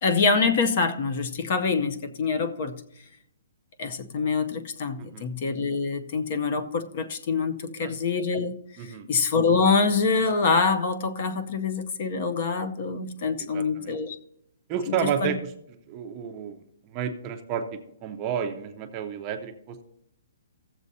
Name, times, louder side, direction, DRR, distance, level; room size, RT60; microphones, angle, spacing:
voice 1, 0.0-2.8 3.8-14.2 14.9-15.0 15.2-15.3, left 4 dB, 35° left, 0.6 m, -25 dB
voice 2, 8.8-9.1 13.5-14.0 14.7-15.5 15.9-16.6 16.8-19.8, right 8 dB, 20° right, 0.6 m, -31 dB
16.0 x 7.3 x 2.7 m
hypercardioid pair, 175°, 0 cm